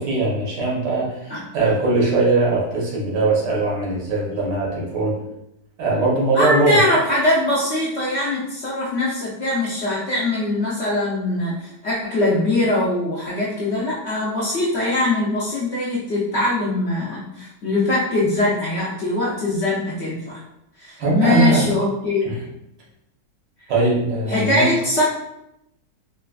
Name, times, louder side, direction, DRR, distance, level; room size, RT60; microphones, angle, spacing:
voice 1, 0.0-5.2 5.8-6.8 21.0-21.7 22.2-22.4 23.7-24.7, right 3 dB, 85° right, -4 dB, 1.6 m, -20 dB
voice 2, 6.3-20.4 20.8-22.3 24.3-25.0, left 1 dB, 60° left, -7 dB, 0.7 m, -22 dB
3.9 x 2.3 x 2.3 m, 0.84 s
omnidirectional pair, 1.8 m